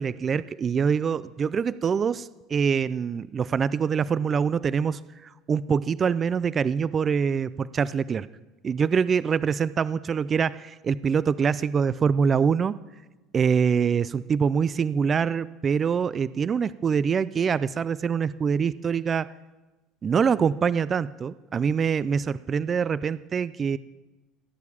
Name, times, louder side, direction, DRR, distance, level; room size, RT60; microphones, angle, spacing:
voice 1, 0.0-8.3 8.6-12.8 13.3-19.3 20.0-23.8, right 6 dB, 30° right, 18 dB, 0.4 m, -24 dB
16.5 x 9.3 x 8.4 m, 1.1 s
cardioid pair, 130°, 0 cm